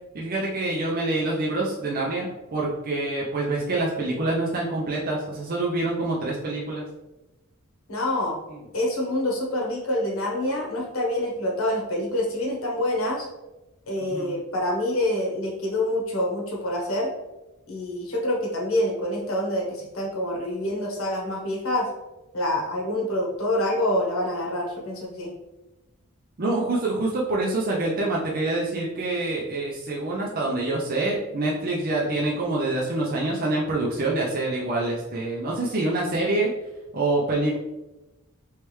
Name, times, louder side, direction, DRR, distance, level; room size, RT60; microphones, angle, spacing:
voice 1, 0.1-6.9 8.5-8.6 14.0-14.3 26.4-36.5 36.9-37.6, right 2 dB, 40° right, -4 dB, 0.5 m, -26 dB
voice 2, 7.9-8.4 8.7-13.3 13.9-17.1 17.7-21.9 22.3-25.3, left 1 dB, 70° left, -1 dB, 1.0 m, -26 dB
3.2 x 3.2 x 3.1 m, 1.0 s
head